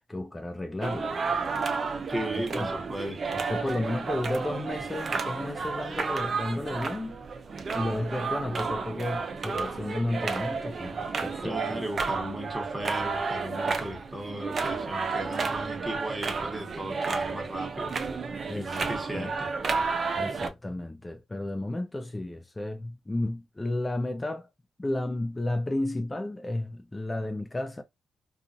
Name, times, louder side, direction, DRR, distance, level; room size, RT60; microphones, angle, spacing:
voice 1, 0.1-1.2 2.3-2.7 3.3-7.2 7.7-11.9 18.5-19.3 20.2-24.5 24.8-27.8, left 1 dB, 20° left, 0.4 m, -32 dB
sound 1, 0.8-20.5, right 4 dB, 50° right, 0.5 m, -32 dB
voice 2, 2.1-3.4 11.4-18.0 18.5-19.5, right 1 dB, 25° right, 1.2 m, -36 dB
2.5 x 2.4 x 2.5 m
supercardioid pair, 50°, 0 cm